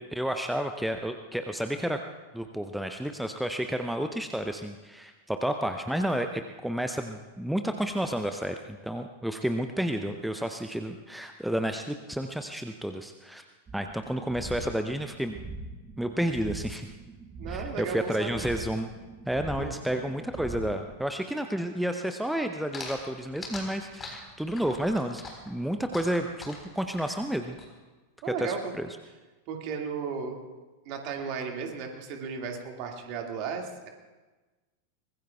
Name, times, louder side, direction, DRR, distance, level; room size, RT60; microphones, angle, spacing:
voice 1, 0.0-2.0 2.3-13.4 13.7-15.4 16.0-16.9 17.5-18.9 19.3-27.6 28.4-28.9, equal, ahead, 6 dB, 0.6 m, -31 dB
sound 1, 13.7-21.0, right 2 dB, 20° right, 1.3 m, -42 dB
voice 2, 17.4-18.4 19.6-19.8 28.2-28.7 29.5-30.4 30.9-33.9, right 6 dB, 45° right, 2 dB, 2.1 m, -35 dB
sound 2, 22.7-27.7, left 3 dB, 20° left, 4.1 m, -42 dB
24.0 x 20.5 x 2.3 m, 1.2 s
figure-of-eight pair, 90°, 0 cm